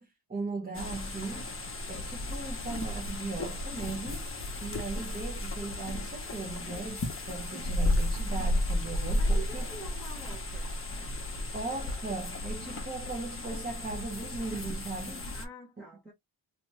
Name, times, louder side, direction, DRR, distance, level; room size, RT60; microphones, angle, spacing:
voice 1, 0.0-1.6 1.9-4.2 4.6-9.7 11.5-15.3 15.8-15.9, right 3 dB, 20° right, 1.0 m, -38 dB
sound 1, 0.7-15.5, left 1 dB, 30° left, 0.9 m, -33 dB
voice 2, 9.1-10.7 15.3-16.1, right 2 dB, ahead, 0.9 m, -46 dB
2.9 x 2.8 x 3.2 m
wide cardioid pair, 170°, 45 cm